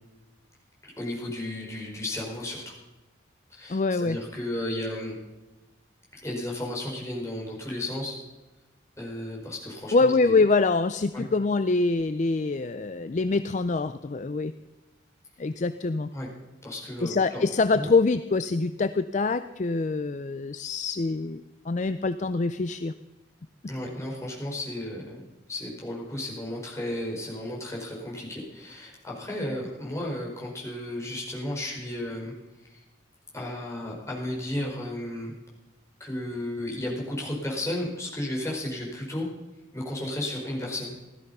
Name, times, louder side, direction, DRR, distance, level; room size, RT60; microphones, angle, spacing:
voice 1, 0.8-2.7 3.5-5.1 6.1-8.2 9.0-10.4 11.1-11.2 16.1-16.3 16.6-17.4 17.7-17.9 23.7-25.2 25.5-32.3 32.6-32.8 33.3-35.3 36.0-39.3 39.7-40.9, left 1 dB, 15° left, -3 dB, 4.8 m, -33 dB
voice 2, 3.7-4.2 9.9-14.5 15.4-16.1 17.0-22.9, left 3 dB, 40° left, 11 dB, 0.4 m, -25 dB
16.5 x 13.0 x 5.5 m, 1.1 s
head